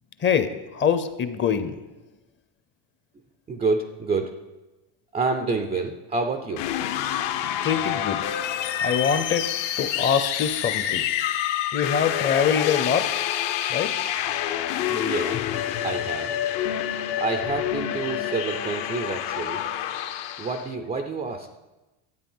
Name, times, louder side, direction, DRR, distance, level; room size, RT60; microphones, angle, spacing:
voice 1, 0.2-1.7 7.6-8.2 8.8-9.5 9.8-11.1 11.7-13.1 13.7-13.9, left 7 dB, 25° left, 11 dB, 0.6 m, -24 dB
voice 2, 3.5-4.4 5.1-6.7 14.9-15.4 15.8-16.3 17.2-19.6 20.4-21.5, right 3 dB, 15° right, 6 dB, 0.3 m, -28 dB
sound 1, 6.5-20.7, left 11 dB, 55° left, 0.8 m, -27 dB
12.0 x 8.4 x 5.5 m, 1.1 s
supercardioid pair, 135°, 50 cm